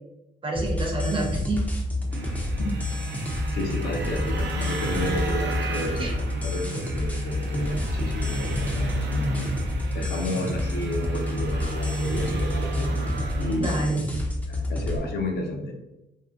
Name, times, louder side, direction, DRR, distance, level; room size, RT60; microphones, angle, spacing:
voice 1, 0.4-1.6 6.0-6.1 13.4-14.1, right 2 dB, 25° right, -1 dB, 0.7 m, -28 dB
sound 1, 0.6-15.0, left 1 dB, 10° left, 0.5 m, -29 dB
sound 2, 2.1-13.6, right 3 dB, 60° right, 0.5 m, -34 dB
voice 2, 3.5-9.6 9.9-12.9 13.4-13.9 14.5-15.7, left 1 dB, 55° left, 2 dB, 0.6 m, -31 dB
2.6 x 2.1 x 2.4 m, 0.95 s
cardioid pair, 90°, 20 cm